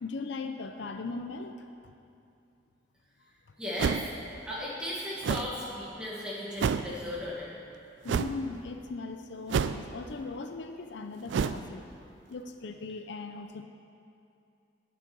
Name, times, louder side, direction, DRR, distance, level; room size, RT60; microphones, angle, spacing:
voice 1, 0.0-1.6 8.0-11.8 12.3-13.6, left 3 dB, 70° left, 6 dB, 0.5 m, -38 dB
voice 2, 3.6-4.0 4.4-7.5, left 1 dB, 5° right, -7 dB, 1.8 m, -36 dB
sound 1, 3.8-4.2 5.2-5.5 6.6-6.9 8.1-8.4 9.5-10.0 11.3-11.6, right 6 dB, 80° right, 0.3 m, -28 dB
9.3 x 7.4 x 5.4 m, 2.6 s
head